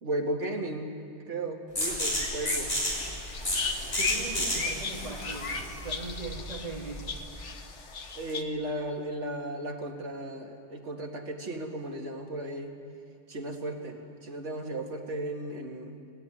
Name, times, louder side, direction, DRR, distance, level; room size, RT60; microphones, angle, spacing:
voice 1, 0.0-0.9 1.3-2.7 4.3-4.5 8.1-12.8 13.3-16.0, right 1 dB, 90° right, 2 dB, 2.4 m, -35 dB
sound 1, 1.8-7.2, equal, 65° left, 7.1 m, -32 dB
sound 2, 2.1-8.4, left 5 dB, 85° left, 1.6 m, -37 dB
voice 2, 4.0-7.2, right 2 dB, 35° right, -6 dB, 3.1 m, -40 dB
22.0 x 17.5 x 9.8 m, 2.4 s
omnidirectional pair, 1.2 m